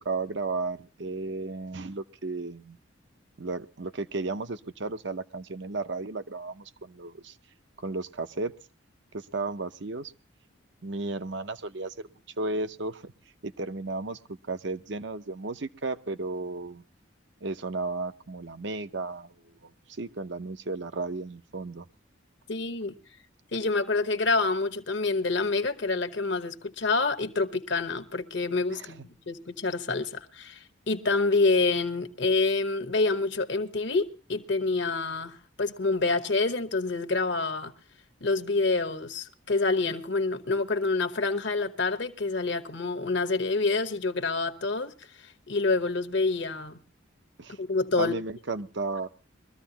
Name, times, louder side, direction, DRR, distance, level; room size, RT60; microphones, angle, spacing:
voice 1, 0.0-2.8 3.4-7.3 7.8-8.5 9.1-10.1 10.8-11.9 12.4-13.1 13.4-14.2 14.5-16.8 17.4-19.7 20.0-21.9 28.7-28.9 47.4-47.6 48.0-49.1, right 3 dB, 60° right, 0.8 m, -34 dB
voice 2, 22.5-23.0 23.5-37.7 38.2-44.9 45.5-46.8 47.6-48.1, left 3 dB, 60° left, 1.2 m, -27 dB
22.5 x 14.0 x 2.9 m
head